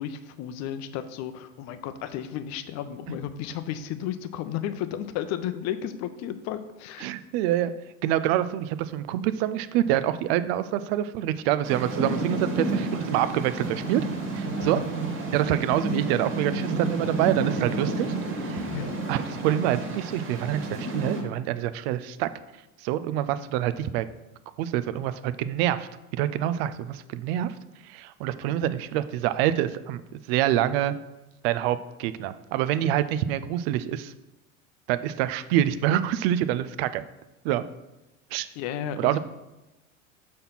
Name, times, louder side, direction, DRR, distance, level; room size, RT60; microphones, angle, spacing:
voice 1, 0.0-7.1 14.6-14.8 18.6-18.9 38.5-39.2, left 10 dB, 40° left, 11 dB, 0.7 m, -33 dB
voice 2, 7.0-7.7 8.0-14.0 14.4-14.8 15.3-18.1 18.4-18.6 19.1-22.3 22.8-24.0 24.6-27.5 27.9-30.9 31.4-34.1 34.9-37.0 37.4-37.6 38.3-38.5 39.0-39.2, right 12 dB, 50° right, 14 dB, 0.6 m, -26 dB
sound 1, 11.6-21.2, right 2 dB, 30° right, 1.8 m, -30 dB
6.6 x 4.2 x 5.7 m, 0.98 s
figure-of-eight pair, 80°, 40 cm